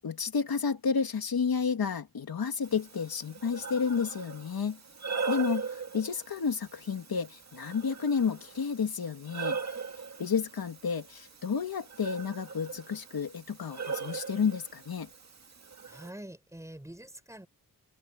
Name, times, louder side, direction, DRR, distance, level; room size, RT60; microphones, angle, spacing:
voice 1, 0.0-4.8 5.3-9.6 10.2-15.1, left 6 dB, 70° left, 2.7 m, -31 dB
Breathing, 2.6-16.1, right 5 dB, 45° right, 2.3 m, -40 dB
voice 2, 15.9-17.5, right 1 dB, 10° right, 6.3 m, -45 dB
wide cardioid pair, 135°, 38 cm